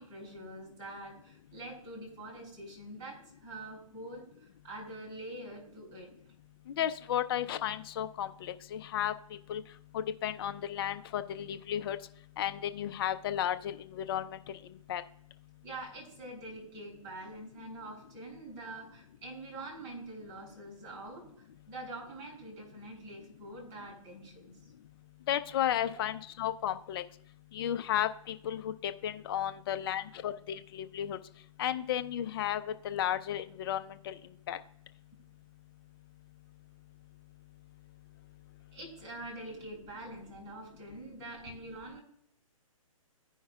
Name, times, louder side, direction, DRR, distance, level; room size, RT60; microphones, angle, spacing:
voice 1, 0.0-6.1 15.6-24.5 25.9-26.1 38.7-42.0, right 2 dB, 30° right, 0 dB, 3.6 m, -45 dB
voice 2, 6.7-9.1 9.5-9.6 9.9-12.0 12.4-14.4 14.9-15.0 25.3-27.0 27.5-31.2 31.6-34.2 34.5-34.6, left 11 dB, 40° left, 9 dB, 0.6 m, -33 dB
16.0 x 5.4 x 2.4 m, 0.66 s
hypercardioid pair, 140°, 18 cm